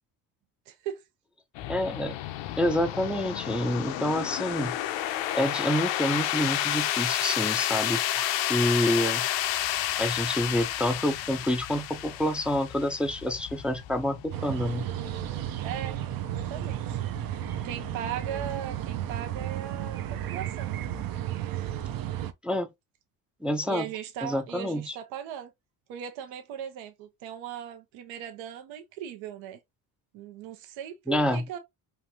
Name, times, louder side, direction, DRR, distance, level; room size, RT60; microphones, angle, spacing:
voice 1, 0.7-1.0 15.6-17.0 17.6-20.9 21.6-21.7 23.6-25.5 25.9-29.6 30.1-31.6, right 9 dB, 75° right, 0.8 m, -38 dB
sound 1, 1.5-20.2, left 13 dB, 65° left, 0.6 m, -32 dB
voice 2, 1.7-2.1 2.6-4.8 5.3-9.3 10.0-14.9 22.4-22.7 23.4-23.9 24.2-25.0 31.1-31.4, left 1 dB, 5° right, 0.4 m, -28 dB
sound 2, 14.3-22.3, right 12 dB, 50° right, 0.6 m, -33 dB
3.2 x 2.6 x 2.7 m
supercardioid pair, 85°, 47 cm